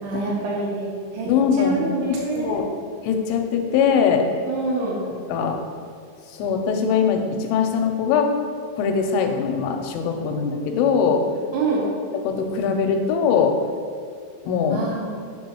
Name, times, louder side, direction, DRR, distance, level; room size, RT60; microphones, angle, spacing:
voice 1, 0.0-1.3 1.6-2.6 4.5-5.0 11.5-11.9 14.7-15.1, right 3 dB, 75° right, -3 dB, 2.5 m, -26 dB
voice 2, 1.3-1.8 2.1-2.7 3.0-4.3 5.3-5.6 6.3-8.3 8.8-11.2 12.1-13.6 14.4-14.8, left 6 dB, 85° left, 4 dB, 3.2 m, -21 dB
6.7 x 6.1 x 2.9 m, 2.1 s
omnidirectional pair, 5.6 m